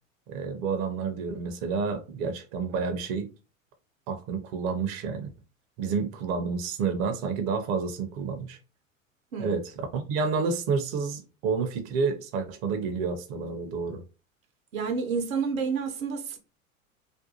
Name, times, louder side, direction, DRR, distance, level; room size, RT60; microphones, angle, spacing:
voice 1, 0.3-3.3 4.1-5.3 5.8-8.6 9.4-14.0, right 5 dB, 35° right, 0.5 m, -29 dB
voice 2, 14.7-16.4, right 5 dB, 75° right, 0.7 m, -29 dB
2.5 x 2.2 x 2.7 m
figure-of-eight pair, 85°, 41 cm